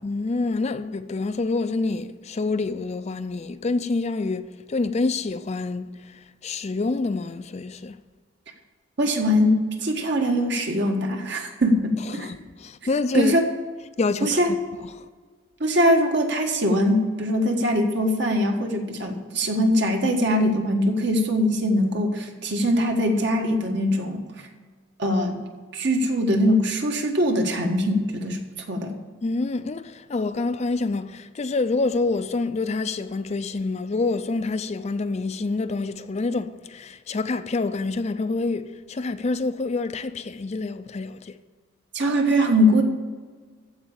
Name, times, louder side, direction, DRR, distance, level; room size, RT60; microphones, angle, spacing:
voice 1, 0.0-8.0 12.1-13.3 14.0-14.6 14.8-15.1 29.2-41.4, left 3 dB, 35° left, 0.4 m, -27 dB
voice 2, 9.0-12.3 13.1-13.5 14.2-14.5 15.6-24.2 25.0-25.4 25.7-28.4 28.7-28.9 41.9-42.8, equal, 60° right, 1.6 m, -22 dB
14.5 x 4.9 x 8.5 m
head